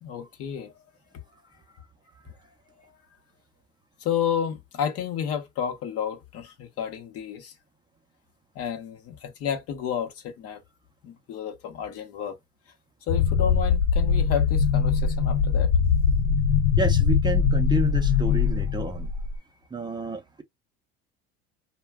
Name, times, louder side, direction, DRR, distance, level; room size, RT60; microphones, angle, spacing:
voice 1, 0.0-0.7 4.0-7.5 8.5-10.6 11.0-12.4 13.1-15.7, left 8 dB, 55° left, 0.9 m, -31 dB
sound 1, 13.1-19.4, left 6 dB, 75° left, 0.5 m, -22 dB
voice 2, 16.8-19.1 19.7-20.4, right 3 dB, 15° right, 0.6 m, -30 dB
2.2 x 2.2 x 3.4 m
supercardioid pair, 95°, 29 cm